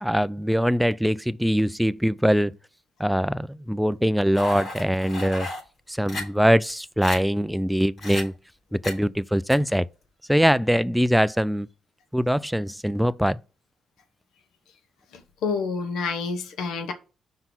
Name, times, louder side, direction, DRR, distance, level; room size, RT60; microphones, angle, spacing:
voice 1, 0.0-2.6 3.0-5.5 5.9-8.3 8.7-9.8 10.3-11.7 12.1-13.4, equal, ahead, 0.4 m, -22 dB
sound 1, 4.3-5.6 6.1-6.2 6.7-6.8 7.0-7.2 8.0-8.2 8.8-9.0 9.5-9.6, left 2 dB, 50° left, 3.6 m, -33 dB
voice 2, 15.1-16.9, left 4 dB, 80° left, 1.1 m, -28 dB
5.4 x 3.9 x 6.0 m
cardioid pair, 90°, 0 cm